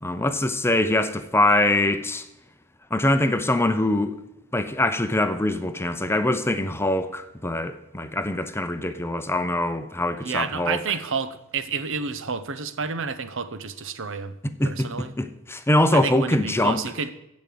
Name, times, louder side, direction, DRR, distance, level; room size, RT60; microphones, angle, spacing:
voice 1, 0.0-2.3 2.9-4.1 4.5-10.8 14.4-14.9 15.2-16.8, left 1 dB, 10° left, 0.7 m, -23 dB
voice 2, 10.2-14.4 14.6-15.1 15.9-17.1, right 5 dB, 65° right, 1.0 m, -30 dB
15.0 x 5.3 x 7.9 m
head